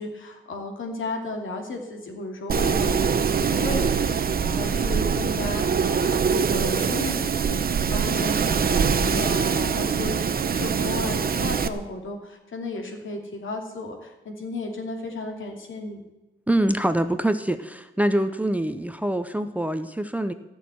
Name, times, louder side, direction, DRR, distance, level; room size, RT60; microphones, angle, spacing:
voice 1, 0.0-10.2 10.5-16.0, left 2 dB, 70° left, 3 dB, 2.8 m, -34 dB
Wind, 2.5-11.7, right 6 dB, 45° right, 0.8 m, -23 dB
voice 2, 16.5-20.3, right 1 dB, 5° right, 10 dB, 0.6 m, -24 dB
15.0 x 6.5 x 9.3 m, 1.1 s
wide cardioid pair, 130°, 21 cm